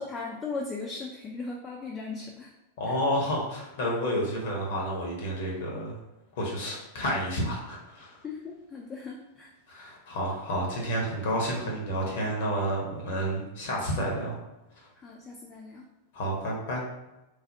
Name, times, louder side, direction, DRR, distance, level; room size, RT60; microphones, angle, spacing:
voice 1, 0.0-2.5 8.2-9.5 15.0-15.8, left 4 dB, 20° left, -1 dB, 0.4 m, -37 dB
voice 2, 2.8-6.0 6.4-8.2 9.7-14.4 16.1-16.9, equal, 55° left, -2 dB, 0.8 m, -30 dB
3.2 x 2.0 x 2.6 m, 0.99 s
figure-of-eight pair, 90°, 0 cm